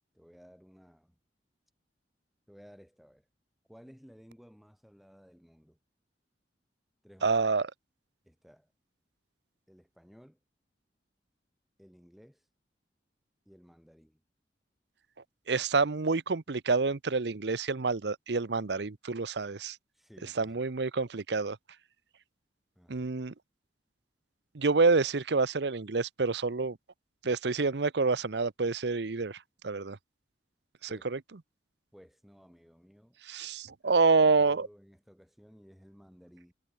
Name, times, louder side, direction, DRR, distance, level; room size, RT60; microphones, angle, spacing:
voice 1, 0.1-1.2 2.5-3.3 3.7-5.8 7.0-7.3 8.3-8.7 9.7-10.4 11.8-12.5 13.5-14.2 19.9-20.6 22.8-23.1 30.9-31.1 31.9-33.2 33.8-36.5, equal, ahead, 5.4 m, -57 dB
voice 2, 7.2-7.7 15.5-19.8 20.4-21.6 22.9-23.3 24.5-26.8 27.2-29.4 29.6-30.0 30.9-31.2 33.3-34.7, right 4 dB, 70° right, 0.8 m, -27 dB
head